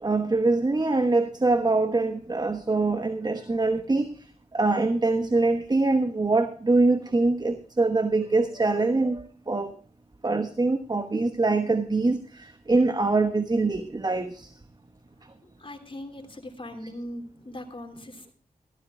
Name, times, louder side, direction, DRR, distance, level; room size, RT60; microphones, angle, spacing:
voice 1, 0.0-4.1 4.5-9.7 10.2-14.5, right 3 dB, 25° right, 10 dB, 1.1 m, -24 dB
voice 2, 15.4-18.3, left 1 dB, 35° left, 5 dB, 3.0 m, -40 dB
13.5 x 13.5 x 3.7 m, 0.43 s
cardioid pair, 45°, 15 cm